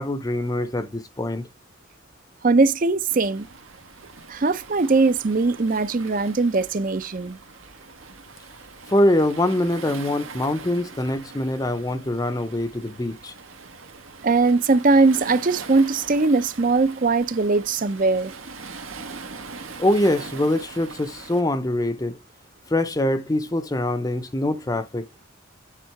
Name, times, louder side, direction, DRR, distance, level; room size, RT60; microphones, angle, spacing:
voice 1, 0.0-1.5 8.9-13.3 19.8-22.2 22.7-25.0, left 1 dB, 15° left, 0.5 m, -23 dB
voice 2, 2.4-3.5 4.3-7.4 14.2-18.3, right 3 dB, 40° right, 0.5 m, -20 dB
Waves surf, 3.1-21.4, right 4 dB, 80° right, 1.7 m, -42 dB
9.2 x 3.7 x 4.5 m
head